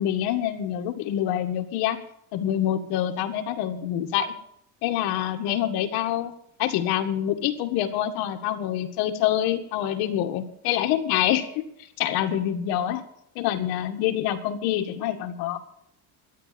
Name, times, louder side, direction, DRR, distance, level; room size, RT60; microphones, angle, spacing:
voice 1, 0.0-2.0 2.3-4.3 4.8-6.3 6.6-11.7 12.0-13.0 13.4-15.6, left 11 dB, 70° left, 5 dB, 1.9 m, -26 dB
13.0 x 9.8 x 7.7 m, 0.70 s
cardioid pair, 165°, 39 cm